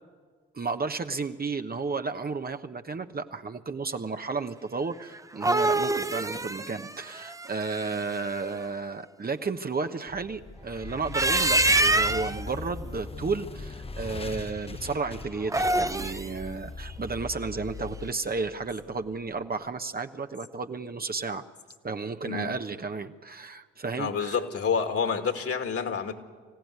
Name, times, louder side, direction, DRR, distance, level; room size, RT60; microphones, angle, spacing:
voice 1, 0.5-21.4 21.8-24.4, right 4 dB, 30° right, 7 dB, 1.2 m, -33 dB
sound 1, 5.1-8.2 10.9-12.4 15.4-16.3, right 2 dB, 10° right, 0.8 m, -25 dB
sound 2, 10.1-19.2, left 4 dB, 20° left, 0.9 m, -40 dB
voice 2, 24.0-26.1, left 6 dB, 50° left, 6 dB, 2.5 m, -28 dB
25.0 x 16.5 x 9.6 m, 1.5 s
hypercardioid pair, 45°, 30 cm